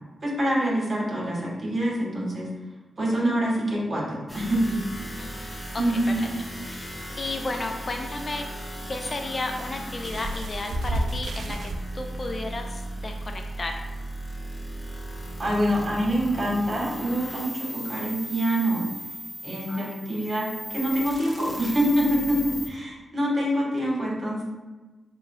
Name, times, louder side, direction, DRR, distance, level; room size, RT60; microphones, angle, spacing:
voice 1, 0.2-2.5 3.0-4.8 5.8-6.3 15.4-18.9 19.4-24.4, equal, 45° right, -4 dB, 1.3 m, -25 dB
sound 1, 4.3-22.7, right 1 dB, 10° left, 0.8 m, -37 dB
voice 2, 5.7-6.3 6.6-8.5 8.9-13.8 19.7-19.9 20.1-20.3, left 2 dB, 40° left, 4 dB, 0.4 m, -33 dB
sound 2, 10.0-11.8 12.7-12.8 13.2-13.3, right 1 dB, 75° right, 0.3 m, -31 dB
6.5 x 2.2 x 2.2 m, 1.2 s
cardioid pair, 80°, 0 cm